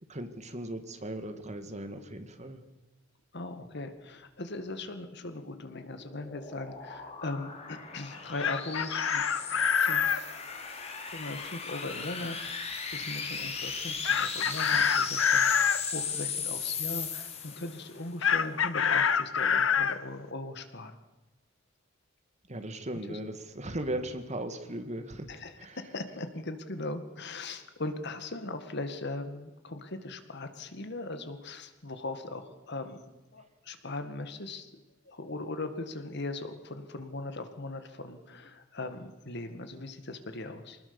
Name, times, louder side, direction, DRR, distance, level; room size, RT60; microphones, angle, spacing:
voice 1, 0.1-2.6 22.5-25.3 25.6-25.8, right 1 dB, 35° right, 8 dB, 2.0 m, -37 dB
voice 2, 3.3-9.2 9.5-10.3 11.1-21.0 23.1-23.2 25.3-33.0 33.3-34.7 35.1-40.8, left 2 dB, 60° left, 8 dB, 2.0 m, -39 dB
sound 1, 5.4-18.0, left 5 dB, 35° left, 3.0 m, -37 dB
Chicken rooster, 8.1-10.2 14.0-15.8 18.2-20.0, left 7 dB, 80° left, 1.0 m, -26 dB
24.5 x 19.5 x 7.1 m, 1.1 s
head